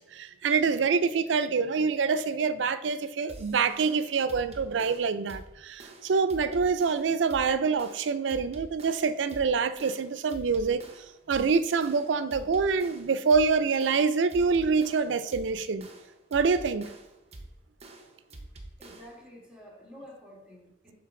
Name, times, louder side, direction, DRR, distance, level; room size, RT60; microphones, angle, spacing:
voice 1, 0.0-10.8 11.3-15.9 16.3-16.9, right 5 dB, 80° right, 0.4 m, -26 dB
sound 1, 3.3-19.3, right 2 dB, 35° right, 0.8 m, -47 dB
voice 2, 18.8-20.9, equal, 5° right, 2.0 m, -49 dB
10.5 x 3.8 x 3.7 m
head